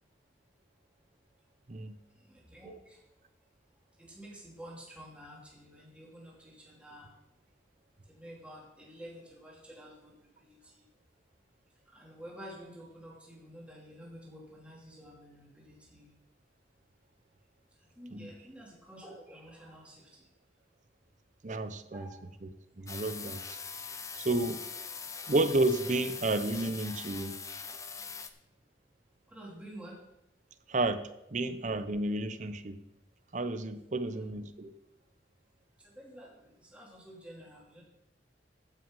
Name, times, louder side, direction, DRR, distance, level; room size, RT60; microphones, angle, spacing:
voice 1, 2.2-3.0 4.0-7.2 8.0-10.9 11.9-16.1 18.0-20.2 21.9-22.2 29.3-30.0 34.1-34.3 35.8-37.8, equal, 5° right, -3 dB, 2.8 m, -50 dB
voice 2, 21.4-22.1 22.4-22.5 22.8-23.6 24.2-24.6 25.3-27.4 30.7-31.0 31.3-32.8 33.3-34.7, right 2 dB, 45° right, 11 dB, 0.7 m, -31 dB
sound 1, 22.9-28.3, left 5 dB, 15° left, 0.6 m, -42 dB
14.5 x 6.2 x 5.3 m, 0.88 s
head